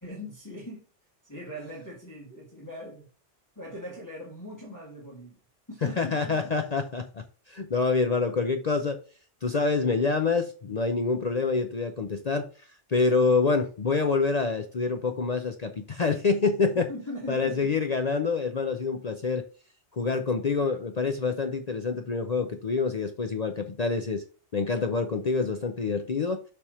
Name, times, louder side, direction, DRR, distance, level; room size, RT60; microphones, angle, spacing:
voice 1, 0.0-0.8 1.2-3.1 3.5-5.4 5.7-6.5 16.7-17.7, equal, 15° left, 1.6 m, -40 dB
voice 2, 5.8-9.0 9.4-16.9 17.3-19.4 19.9-24.2 24.5-26.4, left 4 dB, 45° left, 0.6 m, -26 dB
7.2 x 3.5 x 4.9 m
omnidirectional pair, 1.2 m